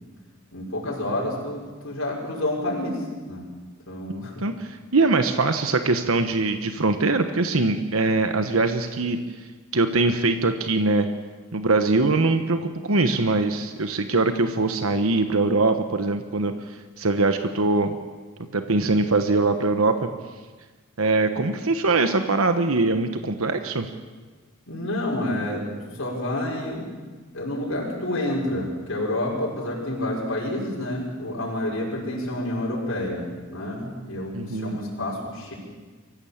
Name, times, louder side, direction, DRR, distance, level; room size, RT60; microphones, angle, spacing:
voice 1, 0.5-3.5 3.9-4.4 24.7-26.9 27.3-35.5, left 1 dB, 65° left, -4 dB, 5.6 m, -29 dB
voice 2, 4.4-9.2 9.7-11.1 11.5-16.5 17.0-18.0 18.5-20.1 21.0-23.9 34.3-34.8, right 3 dB, 80° right, 8 dB, 1.2 m, -22 dB
24.0 x 15.5 x 8.7 m, 1.4 s
head